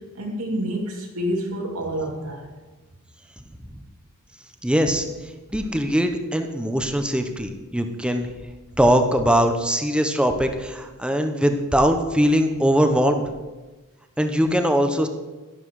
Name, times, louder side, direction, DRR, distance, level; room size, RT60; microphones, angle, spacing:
voice 1, 0.1-2.5, equal, 80° right, 0 dB, 2.7 m, -28 dB
voice 2, 4.6-5.1 5.5-8.3 8.8-13.2 14.2-15.1, equal, 5° right, 6 dB, 0.9 m, -21 dB
11.5 x 11.5 x 4.8 m, 1.2 s
head